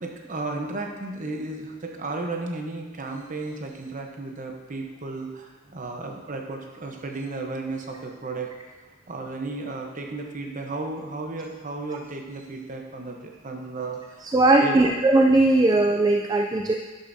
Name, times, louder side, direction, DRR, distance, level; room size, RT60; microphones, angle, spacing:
voice 1, 0.0-8.6 9.1-15.1, right 3 dB, 40° right, 2 dB, 1.0 m, -34 dB
voice 2, 14.3-16.7, right 2 dB, 20° right, 2 dB, 0.4 m, -19 dB
11.0 x 6.7 x 2.7 m, 1.3 s
head